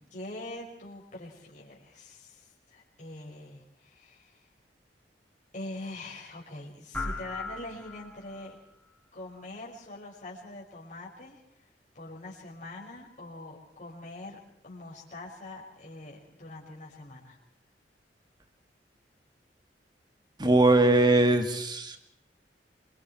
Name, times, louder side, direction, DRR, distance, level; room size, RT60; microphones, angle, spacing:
voice 1, 0.0-4.5 5.5-8.6 9.1-11.4 11.9-14.4 14.6-17.4, left 2 dB, 45° left, -4 dB, 5.7 m, -43 dB
sound 1, 6.9-8.5, left 2 dB, 10° left, 4.7 m, -37 dB
voice 2, 20.4-22.0, right 2 dB, 25° right, 6 dB, 2.4 m, -21 dB
27.5 x 25.0 x 4.6 m, 0.75 s
head